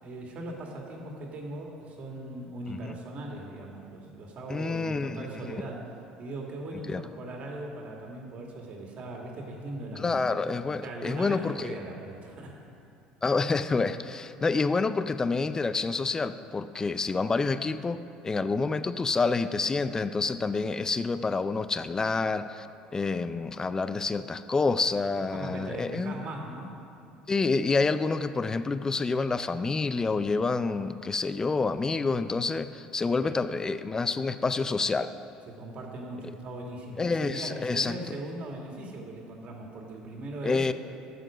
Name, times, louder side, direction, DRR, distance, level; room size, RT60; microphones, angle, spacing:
voice 1, 0.0-5.9 6.2-10.2 10.8-12.5 25.3-26.7 33.1-33.4 35.5-40.6, right 2 dB, 50° right, 0 dB, 2.1 m, -39 dB
voice 2, 4.5-5.2 6.9-7.0 10.0-11.8 13.2-18.0 18.2-22.7 22.9-26.2 27.3-35.1 37.0-38.0 40.4-40.7, left 4 dB, 20° left, 12 dB, 0.5 m, -28 dB
12.5 x 7.6 x 5.1 m, 2.6 s
supercardioid pair, 90°, 3 cm